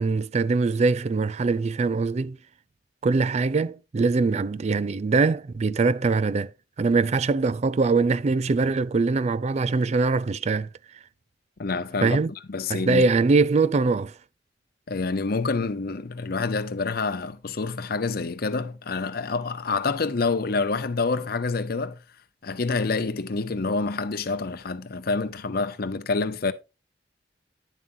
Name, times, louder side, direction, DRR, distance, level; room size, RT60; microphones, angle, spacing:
voice 1, 0.0-2.4 3.0-6.5 6.8-10.7 12.0-12.3 12.7-14.1, right 4 dB, 40° right, 0.4 m, -22 dB
voice 2, 11.6-12.2 12.5-13.0 14.9-22.0 22.4-26.5, left 4 dB, 60° left, 0.7 m, -27 dB
10.0 x 7.4 x 2.7 m
head